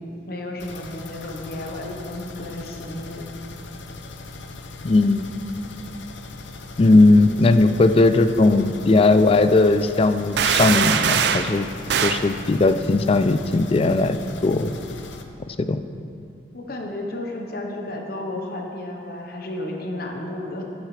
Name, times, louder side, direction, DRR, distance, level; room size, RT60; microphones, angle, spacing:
voice 1, 0.3-3.2 7.2-7.8 16.5-20.6, left 1 dB, 55° left, 1 dB, 1.1 m, -33 dB
sound 1, 0.6-15.2, left 3 dB, 90° left, 0.7 m, -39 dB
voice 2, 4.8-5.2 6.8-11.7 12.0-14.2 14.4-14.8 15.5-15.8, left 2 dB, 35° left, 11 dB, 0.3 m, -18 dB
sound 2, 10.4-11.5 11.9-12.3, right 7 dB, 70° right, 0.4 m, -21 dB
11.5 x 9.2 x 3.3 m, 2.6 s
head